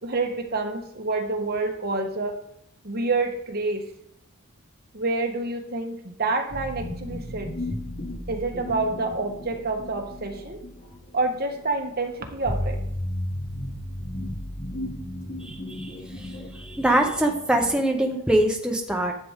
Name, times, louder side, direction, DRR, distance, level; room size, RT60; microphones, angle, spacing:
voice 1, 0.0-2.3 2.8-3.8 4.9-7.5 8.3-10.6 11.1-12.8, right 3 dB, 45° right, 4 dB, 1.2 m, -28 dB
sound 1, 6.5-18.1, left 1 dB, 70° left, 4.6 m, -34 dB
voice 2, 15.4-19.1, right 1 dB, 5° right, 1 dB, 0.8 m, -24 dB
11.0 x 7.7 x 3.6 m, 0.72 s
head